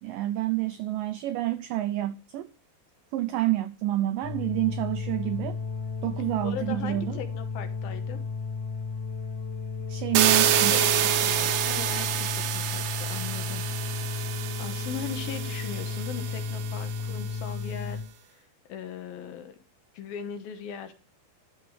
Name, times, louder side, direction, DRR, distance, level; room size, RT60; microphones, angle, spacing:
voice 1, 0.0-2.5 3.1-5.6 6.0-7.2 9.9-10.7, right 15 dB, 90° right, 1.9 m, -28 dB
sound 1, 4.2-18.0, left 5 dB, 50° left, 1.9 m, -34 dB
voice 2, 6.4-8.2 10.6-18.0 18.4-19.5 19.9-20.9, left 8 dB, 70° left, 2.7 m, -39 dB
sound 2, 10.1-17.0, right 10 dB, 75° right, 2.0 m, -27 dB
12.5 x 7.3 x 4.8 m
omnidirectional pair, 4.7 m